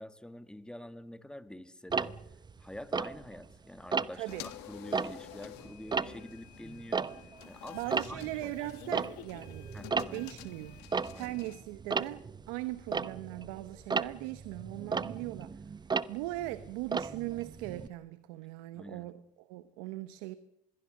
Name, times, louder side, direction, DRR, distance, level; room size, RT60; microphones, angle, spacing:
voice 1, 0.0-2.2 2.6-7.1 7.5-7.8 8.1-8.5 9.7-10.3 11.1-11.4 18.7-19.1, left 1 dB, 5° left, 2.0 m, -47 dB
Tick-tock, 1.9-3.5 3.9-4.3 4.8-7.5 7.8-17.9, right 5 dB, 25° right, 0.9 m, -35 dB
voice 2, 4.1-4.5 7.7-9.7 10.1-10.8 11.1-15.7 16.1-20.4, right 17 dB, 85° right, 1.0 m, -39 dB
sound 1, 4.3-11.6, left 14 dB, 75° left, 1.7 m, -49 dB
26.5 x 21.5 x 6.6 m
supercardioid pair, 80°, 17 cm